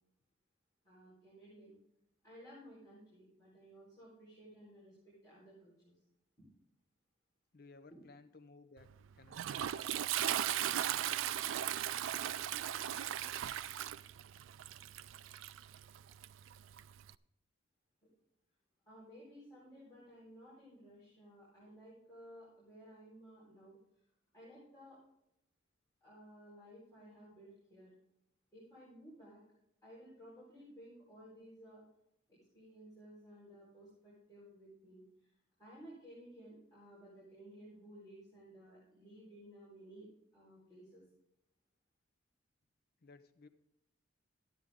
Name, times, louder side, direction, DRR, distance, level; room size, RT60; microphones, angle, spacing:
voice 1, 0.8-1.7 2.2-6.0 6.4-6.5 9.4-10.1 18.0-18.1 18.9-23.8 24.3-25.0 26.0-27.9 28.5-29.4 29.8-31.8 32.3-35.3 35.6-40.1 40.3-41.0, equal, 20° left, -10 dB, 4.5 m, -56 dB
voice 2, 7.5-8.9 9.1-9.5 43.0-43.5, left 3 dB, 50° left, 9 dB, 0.6 m, -58 dB
Toilet flush, 8.8-17.1, right 11 dB, 80° right, 0.3 m, -38 dB
13.0 x 9.3 x 3.7 m, 0.81 s
head